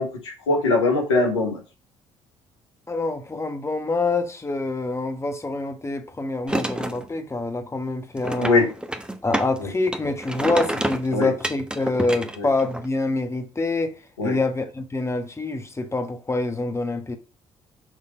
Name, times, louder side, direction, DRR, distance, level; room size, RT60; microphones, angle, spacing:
voice 1, 0.0-1.6 8.4-8.7 9.6-9.7 11.1-11.3 12.4-12.5 14.2-14.4, left 3 dB, 85° left, 1.5 m, -22 dB
voice 2, 2.9-8.7 9.2-13.9 14.2-17.2, left 3 dB, 20° left, 1.2 m, -26 dB
sound 1, 6.5-7.0 8.2-9.6 9.9-12.8, right 1 dB, 5° right, 1.1 m, -28 dB
6.3 x 3.7 x 5.1 m
figure-of-eight pair, 45°, 15 cm